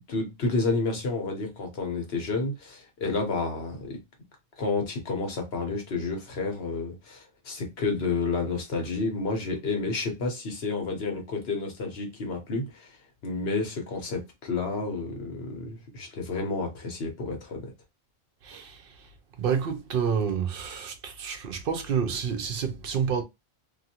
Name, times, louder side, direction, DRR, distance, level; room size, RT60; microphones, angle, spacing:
voice 1, 0.1-4.0 4.6-12.9 13.2-17.7, left 3 dB, 70° left, 1.2 m, -30 dB
voice 2, 18.4-19.1 19.4-23.2, right 7 dB, 65° right, 0.7 m, -29 dB
2.6 x 2.6 x 2.7 m
omnidirectional pair, 1.1 m